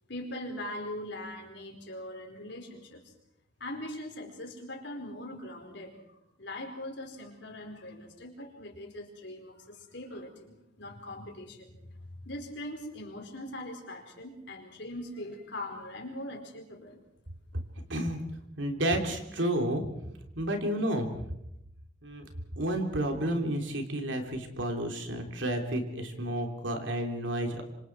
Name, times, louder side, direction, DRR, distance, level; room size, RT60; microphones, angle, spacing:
voice 1, 0.1-3.1 3.6-6.0 6.4-11.8 12.2-17.0, left 1 dB, 60° left, 3 dB, 4.6 m, -41 dB
voice 2, 17.9-18.2 18.6-19.8 20.3-21.1 22.0-22.3 22.6-27.6, right 1 dB, 75° right, 4 dB, 3.3 m, -31 dB
27.0 x 25.5 x 4.7 m, 0.82 s
head